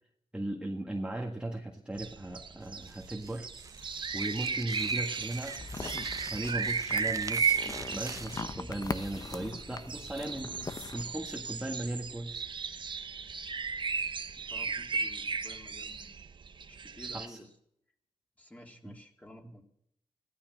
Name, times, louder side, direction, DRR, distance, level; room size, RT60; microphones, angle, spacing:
voice 1, 0.3-5.7 6.3-12.5 17.1-17.4 18.8-18.9 19.4-19.6, right 1 dB, 10° right, 0 dB, 1.6 m, -38 dB
sound 1, 2.0-17.3, right 5 dB, 45° right, 1.0 m, -35 dB
sound 2, 2.6-8.5, right 4 dB, 30° right, 0.7 m, -47 dB
sound 3, 5.6-11.0, left 4 dB, 35° left, 0.9 m, -41 dB
voice 2, 14.4-16.2 16.7-17.5 18.4-19.6, left 1 dB, 15° left, 1 dB, 3.4 m, -52 dB
16.5 x 12.5 x 6.3 m, 0.70 s
wide cardioid pair, 125°, 11 cm